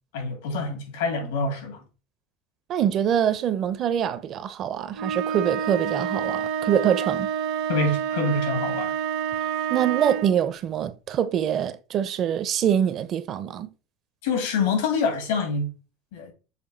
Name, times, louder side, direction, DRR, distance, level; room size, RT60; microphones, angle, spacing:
voice 1, 0.1-1.8 7.7-8.9 14.2-15.7 16.1-16.3, left 4 dB, 90° left, 2.4 m, -26 dB
voice 2, 2.7-7.3 9.7-13.7, right 9 dB, 40° right, 0.6 m, -24 dB
sound 1, 4.9-10.4, right 8 dB, 65° right, 1.0 m, -28 dB
6.8 x 2.7 x 5.3 m
supercardioid pair, 145°, 0 cm